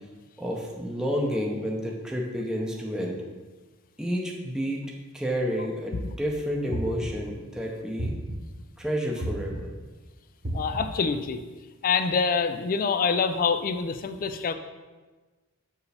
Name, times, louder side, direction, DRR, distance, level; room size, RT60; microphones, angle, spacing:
voice 1, 0.4-3.2 4.0-4.8 5.1-8.1 8.8-9.7, equal, 5° right, -2 dB, 0.6 m, -30 dB
sound 1, 6.7-7.4 8.0-8.6 9.2-9.8 10.4-11.1, right 1 dB, 50° right, 1.1 m, -33 dB
voice 2, 10.5-11.4 11.8-14.5, left 5 dB, 40° left, 9 dB, 0.4 m, -26 dB
6.7 x 4.7 x 3.4 m, 1.3 s
head